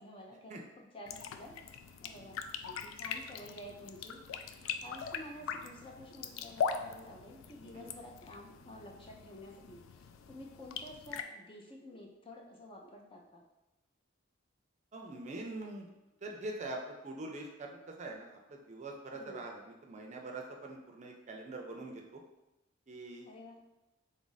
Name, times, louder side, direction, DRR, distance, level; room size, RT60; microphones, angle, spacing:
voice 1, 0.0-1.5 2.0-4.2 4.5-13.4 19.1-19.4 23.3-23.6, left 1 dB, 25° left, 0 dB, 0.6 m, -50 dB
sound 1, 1.1-11.2, left 6 dB, 80° left, 0.3 m, -41 dB
voice 2, 14.9-15.9 16.2-22.2 22.9-23.3, right 2 dB, 35° right, 1 dB, 0.5 m, -44 dB
3.9 x 2.5 x 4.0 m, 0.99 s
head